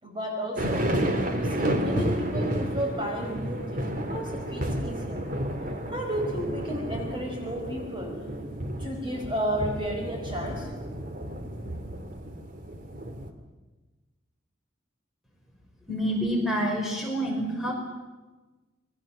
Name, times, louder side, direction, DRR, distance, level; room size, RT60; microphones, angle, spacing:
voice 1, 0.0-0.9 1.3-5.2 5.9-8.1 8.8-10.7, equal, 25° right, 1 dB, 5.1 m, -32 dB
sound 1, 0.6-13.3, right 1 dB, 45° right, 2.5 m, -31 dB
voice 2, 15.9-17.7, equal, ahead, -1 dB, 5.5 m, -27 dB
28.0 x 21.5 x 7.4 m, 1.2 s
head